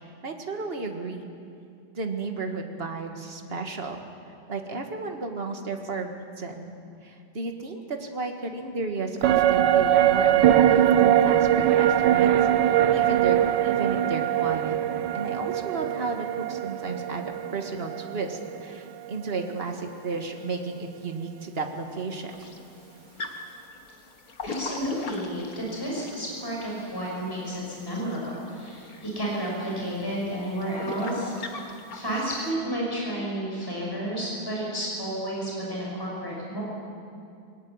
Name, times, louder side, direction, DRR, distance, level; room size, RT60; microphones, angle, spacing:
voice 1, 0.2-1.3 1.9-4.0 4.5-6.1 6.4-6.7 7.0-12.4 12.6-14.8 15.1-22.5, right 3 dB, 30° right, 4 dB, 1.8 m, -33 dB
sound 1, 9.2-18.7 19.1-19.2, right 11 dB, 70° right, 1.3 m, -22 dB
sound 2, 22.3-32.5, left 3 dB, 45° left, 1.9 m, -41 dB
voice 2, 24.4-36.6, right 1 dB, 10° left, -4 dB, 6.0 m, -31 dB
21.5 x 17.5 x 9.7 m, 2.5 s
omnidirectional pair, 2.2 m